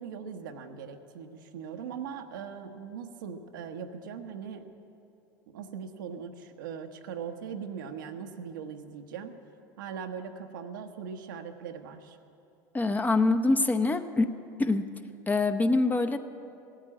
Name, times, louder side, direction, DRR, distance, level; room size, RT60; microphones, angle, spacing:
voice 1, 0.0-4.6 5.5-9.4 9.8-12.2, right 7 dB, 80° right, 5 dB, 1.0 m, -40 dB
voice 2, 12.7-14.3 14.6-14.9 15.3-16.2, left 3 dB, 15° left, 8 dB, 0.8 m, -25 dB
16.5 x 8.9 x 8.7 m, 2.7 s
hypercardioid pair, 85°, 10 cm